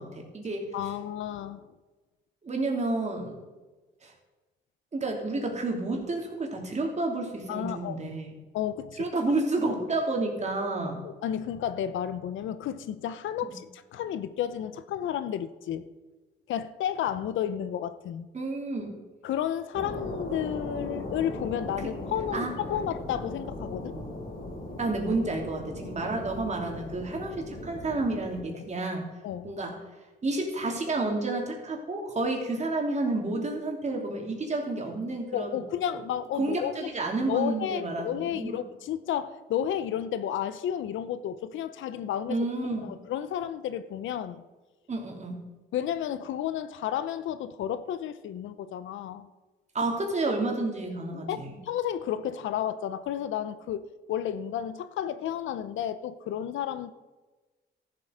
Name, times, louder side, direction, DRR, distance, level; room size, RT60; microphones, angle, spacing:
voice 1, 0.0-0.7 2.4-3.4 4.0-4.1 4.9-8.3 9.0-11.0 13.4-13.5 18.3-18.9 21.8-21.9 22.3-22.5 24.8-29.0 29.4-29.7 30.2-35.6 35.9-36.0 36.4-38.6 42.3-42.8 44.9-45.4 49.7-51.6, right 2 dB, 35° right, 1 dB, 3.0 m, -30 dB
voice 2, 0.7-1.7 7.5-8.0 8.5-9.1 11.0-15.8 16.5-18.3 19.2-23.9 29.2-29.5 35.3-36.9 37.3-42.4 42.6-44.4 45.7-49.3 51.1-51.4 51.6-56.9, left 10 dB, 75° left, 13 dB, 0.7 m, -32 dB
sound 1, 19.7-28.4, left 1 dB, 45° left, 3.6 m, -38 dB
13.5 x 7.7 x 5.1 m, 1.2 s
cardioid pair, 90°, 20 cm